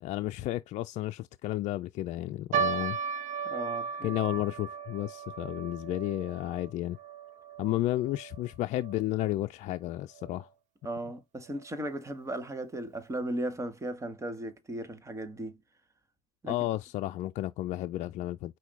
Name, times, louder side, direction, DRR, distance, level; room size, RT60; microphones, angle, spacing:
voice 1, 0.0-3.0 4.0-7.0 7.6-10.5 16.5-18.6, left 15 dB, 55° left, 0.4 m, -32 dB
sound 1, 2.5-9.0 9.3-9.4 10.1-10.4 11.0-11.1 11.5-11.6, right 6 dB, 60° right, 1.0 m, -36 dB
voice 2, 3.4-4.1 10.8-15.6 16.4-16.6, right 1 dB, 20° right, 1.5 m, -36 dB
5.8 x 2.3 x 3.3 m
supercardioid pair, 90°, 14 cm